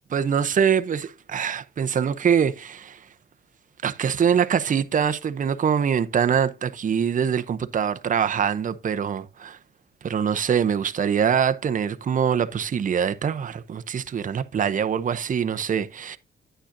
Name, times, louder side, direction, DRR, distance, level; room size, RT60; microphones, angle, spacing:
voice 1, 0.1-3.0 3.8-9.6 10.0-16.2, right 7 dB, 40° right, 0.7 m, -24 dB
10.0 x 9.0 x 2.6 m
cardioid pair, 115°, 20 cm